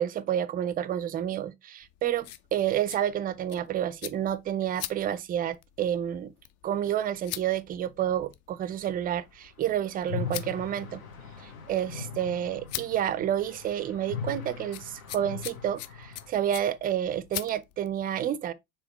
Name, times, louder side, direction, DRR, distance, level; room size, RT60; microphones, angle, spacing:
voice 1, 0.0-6.3 6.6-11.0 11.4-18.5, right 10 dB, 20° right, 0.4 m, -29 dB
sound 1, 1.8-18.0, left 13 dB, 40° left, 0.5 m, -44 dB
sound 2, 10.0-16.3, left 6 dB, 70° left, 1.4 m, -40 dB
4.9 x 3.6 x 3.0 m
hypercardioid pair, 75°, 42 cm